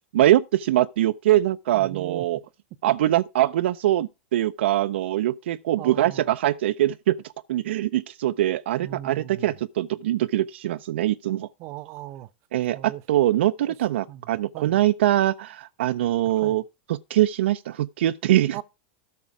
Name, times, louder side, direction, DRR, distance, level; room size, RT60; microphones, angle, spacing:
voice 1, 0.1-2.4 2.8-7.2 7.5-11.5 12.5-16.6 16.9-18.6, right 13 dB, 75° right, 0.5 m, -23 dB
voice 2, 1.7-2.3 5.8-6.3 8.8-9.5 11.6-12.3 12.7-13.0 14.1-14.9 16.2-16.6 18.5-18.6, right 14 dB, 45° right, 0.8 m, -38 dB
13.0 x 5.9 x 4.7 m
hypercardioid pair, 110°, 6 cm